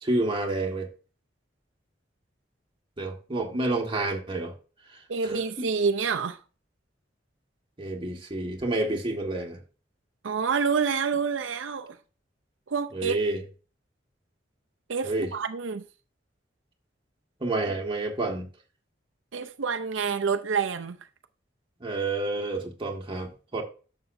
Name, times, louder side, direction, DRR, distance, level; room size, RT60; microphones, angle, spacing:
voice 1, 0.0-0.9 3.0-4.5 5.2-5.7 7.8-9.6 12.9-13.4 15.0-15.3 17.4-18.5 21.8-23.6, right 2 dB, 30° right, 1.7 m, -29 dB
voice 2, 5.1-6.4 10.2-12.0 12.7-13.2 14.9-15.8 19.3-21.0, right 5 dB, 90° right, 0.6 m, -27 dB
11.0 x 6.7 x 2.6 m
head